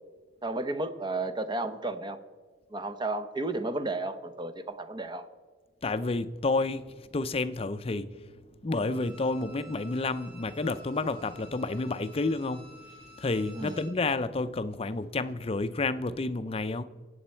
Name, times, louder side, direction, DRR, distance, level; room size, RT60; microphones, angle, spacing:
voice 1, 0.4-2.2 2.7-5.3 13.5-13.8, right 2 dB, 25° right, 0.7 m, -33 dB
voice 2, 5.8-8.1 8.6-12.7 13.2-16.8, left 3 dB, 30° left, 0.5 m, -30 dB
Bowed string instrument, 8.8-14.0 14.4-14.5, left 1 dB, 85° right, 3.6 m, -52 dB
23.5 x 8.5 x 4.4 m
head